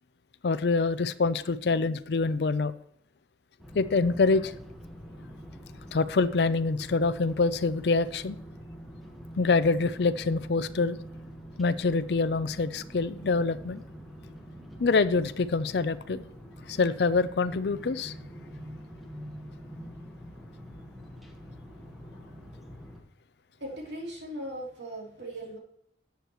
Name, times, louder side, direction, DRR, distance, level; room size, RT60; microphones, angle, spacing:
voice 1, 0.4-2.7 3.7-4.5 5.9-8.4 9.4-11.0 11.6-13.8 14.8-16.3 16.7-18.1, left 4 dB, 65° left, 13 dB, 0.5 m, -25 dB
sound 1, 3.6-23.0, equal, ahead, 1.3 m, -45 dB
voice 2, 23.6-25.6, right 1 dB, 75° right, -2 dB, 3.1 m, -38 dB
13.5 x 8.0 x 3.1 m, 0.72 s
head